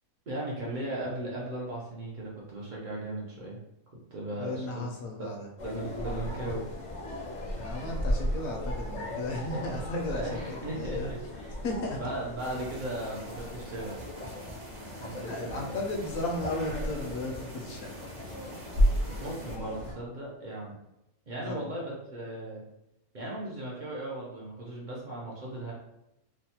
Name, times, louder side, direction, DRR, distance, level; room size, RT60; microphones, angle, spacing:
voice 1, 0.3-3.6 4.1-4.8 5.2-5.3 5.6-6.6 9.5-9.6 10.1-11.6 11.9-14.0 15.0-15.8 18.9-20.7 21.3-22.6 23.1-25.7, right 1 dB, 60° right, -5 dB, 0.4 m, -37 dB
voice 2, 4.3-5.5 7.5-10.4 10.8-11.1 11.6-12.0 15.1-17.9 21.4-21.5, left 2 dB, 75° left, 1 dB, 1.0 m, -35 dB
sound 1, 5.6-19.9, equal, 50° left, 0.5 m, -34 dB
sound 2, 12.4-19.6, right 2 dB, 85° right, 1.2 m, -49 dB
3.1 x 2.0 x 2.8 m, 0.86 s
omnidirectional pair, 1.5 m